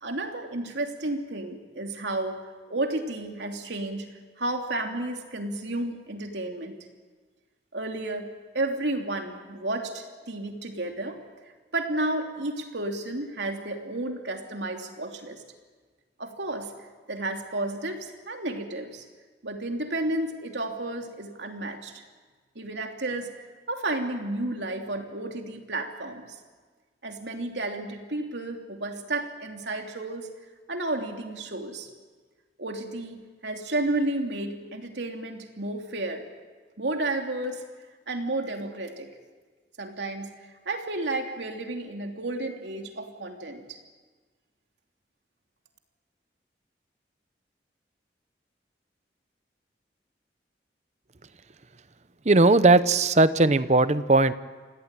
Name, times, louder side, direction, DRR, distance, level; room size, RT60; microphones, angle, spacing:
voice 1, 0.0-2.4 2.7-4.1 4.4-6.7 7.7-8.3 8.5-11.2 11.7-15.4 16.2-16.7 17.1-19.0 19.4-22.0 22.5-23.3 23.7-26.4 27.0-30.3 30.7-31.9 32.6-36.2 36.8-37.6 38.1-39.1 39.8-40.3 40.6-43.6, right 2 dB, 85° right, 3 dB, 3.0 m, -32 dB
voice 2, 52.3-54.3, right 2 dB, 40° right, 14 dB, 0.8 m, -18 dB
28.0 x 17.0 x 9.1 m, 1.4 s
head